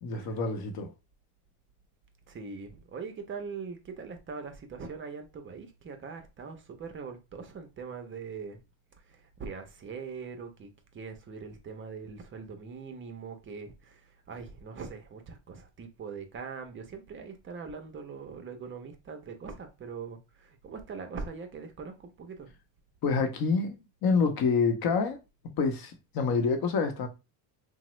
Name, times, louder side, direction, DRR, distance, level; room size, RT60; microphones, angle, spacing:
voice 1, 0.0-0.9 23.0-25.2 25.6-27.1, left 4 dB, 45° left, 0.7 m, -27 dB
voice 2, 2.3-8.6 9.0-10.7 10.9-22.5, right 5 dB, 25° right, 0.4 m, -42 dB
2.8 x 2.0 x 3.0 m
cardioid pair, 110°, 50 cm